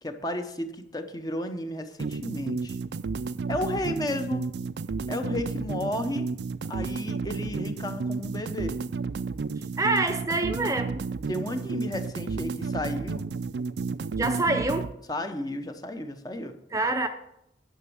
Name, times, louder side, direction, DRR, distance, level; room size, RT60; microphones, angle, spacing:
voice 1, 0.0-2.8 3.5-4.4 5.1-6.3 6.7-8.7 11.3-13.2 15.1-16.6, left 1 dB, 20° left, 7 dB, 0.8 m, -33 dB
sound 1, 2.0-14.9, right 4 dB, 75° right, 0.4 m, -32 dB
voice 2, 9.8-11.0 14.2-14.9 16.7-17.1, right 2 dB, 20° right, 7 dB, 0.5 m, -26 dB
10.0 x 6.1 x 7.0 m, 0.79 s
head